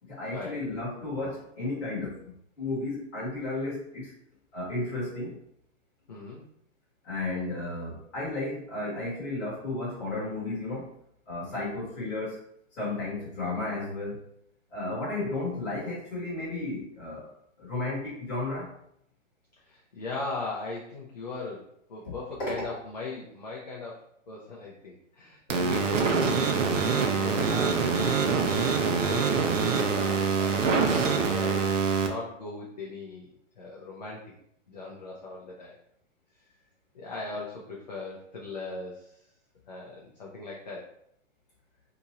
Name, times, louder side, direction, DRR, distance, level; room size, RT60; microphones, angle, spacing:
voice 1, 0.0-4.1 4.5-5.4 7.0-11.0 11.3-12.4 12.7-14.2 14.7-17.3 17.6-18.7 22.4-22.5 27.9-28.6 29.1-29.2, left 2 dB, 10° left, -10 dB, 1.1 m, -33 dB
voice 2, 6.1-6.4 19.7-31.7 32.0-34.3 34.7-35.8 36.9-39.2 39.7-40.9, left 3 dB, 35° left, -4 dB, 0.4 m, -39 dB
sound 1, 25.5-32.1, right 5 dB, 80° right, 0.8 m, -25 dB
2.8 x 2.4 x 4.0 m, 0.72 s
hypercardioid pair, 180°, 38 cm